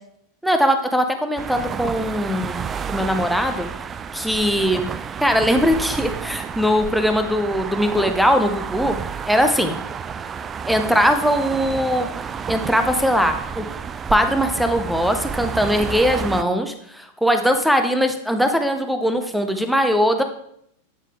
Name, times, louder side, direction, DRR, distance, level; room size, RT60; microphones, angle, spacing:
voice 1, 0.4-3.7 4.1-4.9 5.2-9.0 9.3-9.8 10.7-12.1 12.5-13.6 14.1-20.2, equal, ahead, 6 dB, 0.7 m, -20 dB
sound 1, 1.4-16.4, right 6 dB, 20° right, 0.3 m, -30 dB
9.0 x 5.5 x 3.6 m, 0.72 s
figure-of-eight pair, 90°, 0 cm